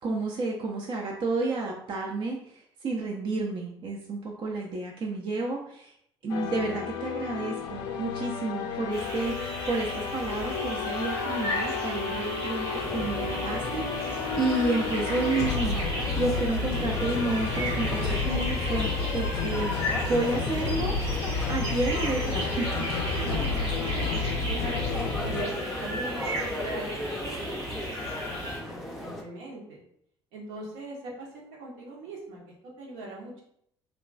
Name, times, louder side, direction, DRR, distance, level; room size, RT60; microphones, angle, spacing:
voice 1, 0.0-5.9 6.2-20.9 21.5-22.8 23.3-23.6, right 2 dB, 35° right, 0 dB, 0.5 m, -31 dB
sound 1, 6.3-25.5, left 5 dB, 65° left, 0.4 m, -31 dB
voice 2, 6.3-6.8 20.2-20.8 23.2-24.1 24.5-29.9 30.3-33.4, right 2 dB, 65° right, -2 dB, 0.8 m, -41 dB
sound 2, 8.9-28.6, equal, 85° right, 1.2 m, -35 dB
sound 3, 12.7-29.2, left 1 dB, ahead, 0.6 m, -37 dB
2.9 x 2.3 x 2.4 m, 0.70 s
figure-of-eight pair, 55°, 14 cm